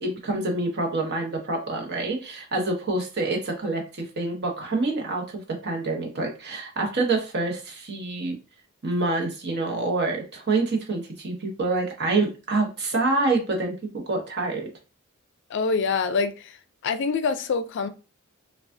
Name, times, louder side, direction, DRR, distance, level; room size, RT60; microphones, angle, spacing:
voice 1, 0.0-8.3 8.8-13.7 14.1-14.7, right 2 dB, 50° right, 2 dB, 1.0 m, -26 dB
voice 2, 15.5-16.6 16.8-17.9, left 4 dB, 55° left, 10 dB, 0.4 m, -25 dB
4.7 x 2.4 x 2.6 m, 0.32 s
head